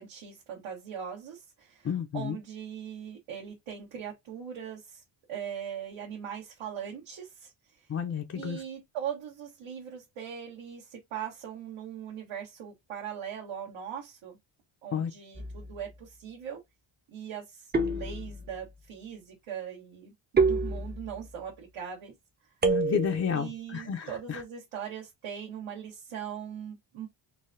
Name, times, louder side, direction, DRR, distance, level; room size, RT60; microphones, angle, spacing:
voice 1, 0.0-5.0 5.3-7.9 8.3-14.4 14.8-16.6 17.1-20.1 20.4-22.1 23.3-27.1, right 8 dB, 85° right, 1.2 m, -40 dB
voice 2, 1.8-2.4 7.9-8.6 14.9-15.1 22.6-24.4, left 7 dB, 35° left, 0.4 m, -31 dB
sound 1, 15.3-15.9 17.7-18.7 20.4-21.3 22.6-23.3, right 4 dB, 20° right, 0.5 m, -28 dB
3.8 x 2.2 x 2.5 m
cardioid pair, 120°, 49 cm